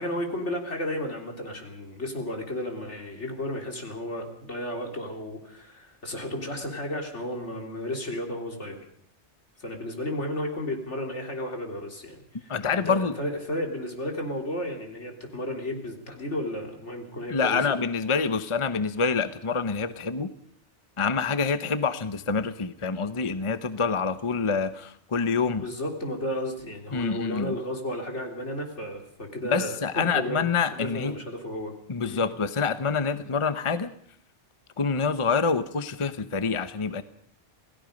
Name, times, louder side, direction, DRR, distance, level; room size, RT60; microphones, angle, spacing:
voice 1, 0.0-8.8 9.6-17.7 25.6-30.4 30.7-31.7 32.0-32.2, left 1 dB, 75° left, 3 dB, 3.8 m, -33 dB
voice 2, 12.5-13.1 17.3-20.3 21.0-25.6 26.9-27.5 29.4-31.2 31.9-33.9 34.8-37.0, left 5 dB, 30° left, 12 dB, 0.9 m, -26 dB
28.0 x 17.5 x 5.2 m, 0.62 s
omnidirectional pair, 1.2 m